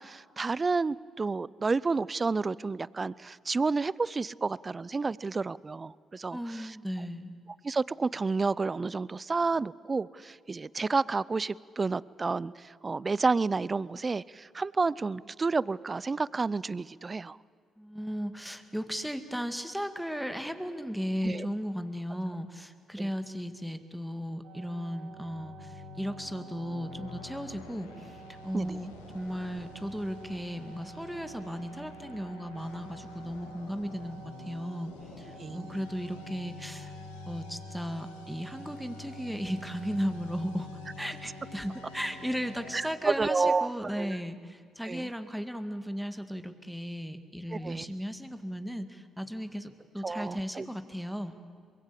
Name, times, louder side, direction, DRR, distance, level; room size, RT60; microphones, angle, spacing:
voice 1, 0.0-6.8 7.6-17.4 21.2-21.5 23.0-23.1 28.5-28.8 35.4-35.7 42.7-44.2 44.9-45.1 47.5-47.9 50.0-50.7, right 4 dB, 35° right, 22 dB, 0.5 m, -30 dB
voice 2, 6.3-7.3 17.8-36.9 37.3-40.7 41.0-51.3, equal, ahead, 8 dB, 2.1 m, -36 dB
sound 1, 24.4-43.0, right 5 dB, 75° right, 6.6 m, -50 dB
sound 2, 25.1-42.9, left 9 dB, 85° left, 1.0 m, -49 dB
24.0 x 22.0 x 8.5 m, 2.3 s
hypercardioid pair, 50°, 0 cm